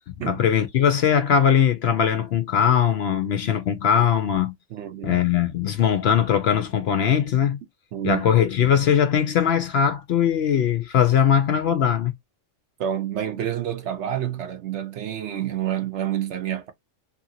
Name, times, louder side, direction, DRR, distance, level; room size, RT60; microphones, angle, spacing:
voice 1, 0.2-4.5 5.0-7.6 8.0-12.1, left 8 dB, 65° left, 0.7 m, -20 dB
voice 2, 4.7-5.2 7.9-8.2 12.8-16.7, right 11 dB, 65° right, 0.9 m, -28 dB
2.8 x 2.8 x 2.6 m
omnidirectional pair, 1.4 m